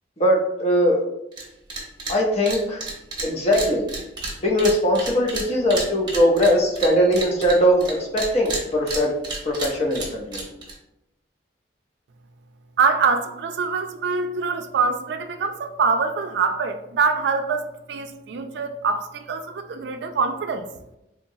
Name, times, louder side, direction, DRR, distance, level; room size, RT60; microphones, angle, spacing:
voice 1, 0.2-1.0 2.1-2.8 3.2-3.8 4.4-9.1 9.4-10.4, equal, 35° left, 0.7 m, -20 dB
sound 1, 1.3-1.4 1.7-2.2 2.5-7.9 8.2-10.7, right 2 dB, 25° right, 0.9 m, -31 dB
voice 2, 12.8-20.7, right 5 dB, 70° right, 0.3 m, -24 dB
3.7 x 2.9 x 2.6 m
head